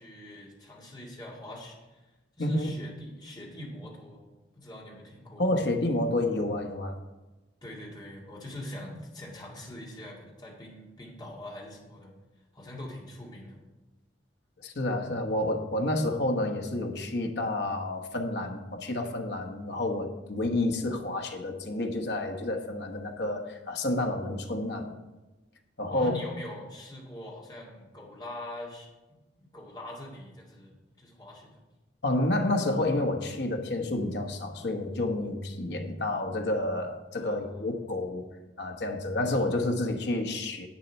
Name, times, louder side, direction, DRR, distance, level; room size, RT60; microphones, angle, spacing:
voice 1, 0.0-2.0 2.4-4.2 4.6-5.5 7.6-12.1 12.5-13.6 25.9-28.9 29.4-31.6 37.2-37.6, left 1 dB, 25° left, -2 dB, 2.1 m, -43 dB
voice 2, 2.4-2.7 5.4-6.9 14.6-24.9 25.8-26.1 32.0-38.2 38.6-40.7, left 1 dB, 65° left, 5 dB, 1.2 m, -29 dB
10.0 x 8.3 x 4.3 m, 1.1 s
head